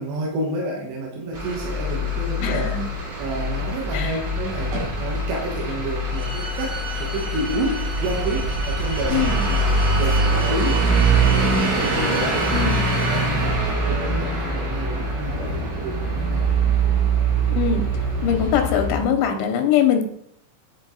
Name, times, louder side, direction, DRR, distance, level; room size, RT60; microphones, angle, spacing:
voice 1, 0.0-2.7 3.1-16.4, right 2 dB, 70° right, -1 dB, 3.3 m, -30 dB
Truck / Idling, 1.3-19.0, right 2 dB, 90° right, 5.5 m, -23 dB
voice 2, 2.4-2.9 3.9-4.2 9.1-9.5 12.5-12.9 17.5-17.8 18.2-20.1, left 8 dB, 85° left, 5 dB, 2.9 m, -22 dB
sound 1, 6.1-13.2, right 5 dB, 55° right, 0.7 m, -35 dB
10.5 x 4.5 x 4.0 m, 0.70 s
omnidirectional pair, 5.4 m